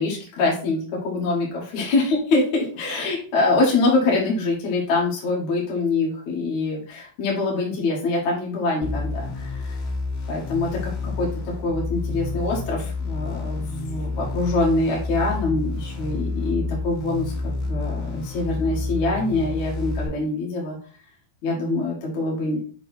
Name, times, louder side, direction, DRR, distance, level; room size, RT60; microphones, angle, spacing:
voice 1, 0.0-9.8 10.3-11.3 11.6-20.8 21.4-22.6, left 3 dB, 50° left, -4 dB, 2.6 m, -24 dB
sound 1, 8.8-20.1, left 3 dB, 85° left, 4.0 m, -29 dB
7.4 x 3.8 x 4.3 m, 0.39 s
omnidirectional pair, 5.2 m